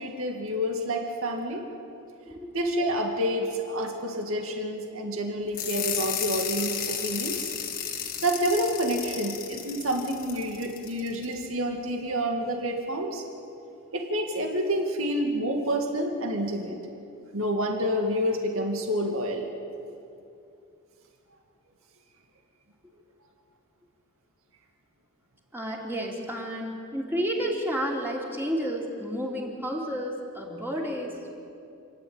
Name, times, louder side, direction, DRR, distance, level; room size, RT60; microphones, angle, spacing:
voice 1, 0.0-1.6 2.5-7.5 8.2-13.2 13.9-16.8 17.3-19.5, equal, 70° right, 2 dB, 2.2 m, -28 dB
sound 1, 5.5-11.3, left 8 dB, 40° left, 1.6 m, -33 dB
voice 2, 25.5-31.3, equal, 10° right, -2 dB, 3.1 m, -31 dB
28.0 x 11.5 x 8.9 m, 2.6 s
head